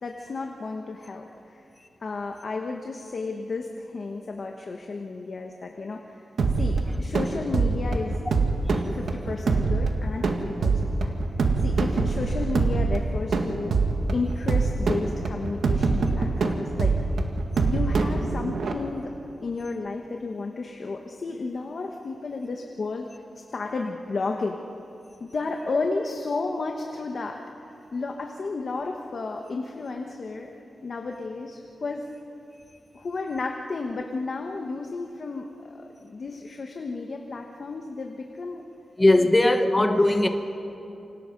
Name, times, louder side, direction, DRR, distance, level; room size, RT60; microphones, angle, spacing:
voice 1, 0.0-1.6 2.0-6.3 6.6-8.2 8.9-11.2 11.6-13.8 14.1-16.9 17.6-23.1 23.5-24.6 25.2-30.5 30.8-32.1 32.9-38.6 39.2-39.3, left 3 dB, 45° left, 1.4 m, -33 dB
sound 1, 6.4-18.7, right 3 dB, 75° right, 2.0 m, -24 dB
voice 2, 39.0-40.3, left 1 dB, 15° left, 1.4 m, -19 dB
29.0 x 26.5 x 5.4 m
wide cardioid pair, 180°, 0 cm